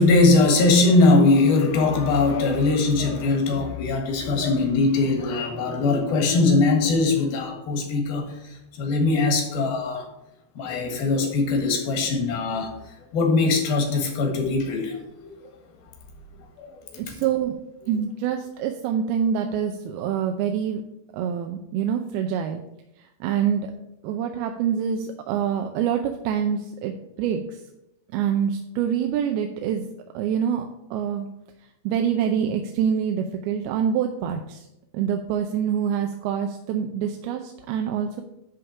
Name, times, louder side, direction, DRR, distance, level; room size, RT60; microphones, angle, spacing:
voice 1, 0.0-10.0 10.6-12.7 13.1-15.3 16.6-17.2, left 3 dB, 75° left, 3 dB, 3.4 m, -21 dB
voice 2, 17.0-17.5 17.9-20.8 21.1-22.6 23.2-23.7 24.0-27.6 28.1-29.8 30.1-31.3 31.8-34.7 34.9-38.2, right 8 dB, 90° right, 5 dB, 2.6 m, -26 dB
11.0 x 3.6 x 6.9 m, 0.87 s
omnidirectional pair, 4.3 m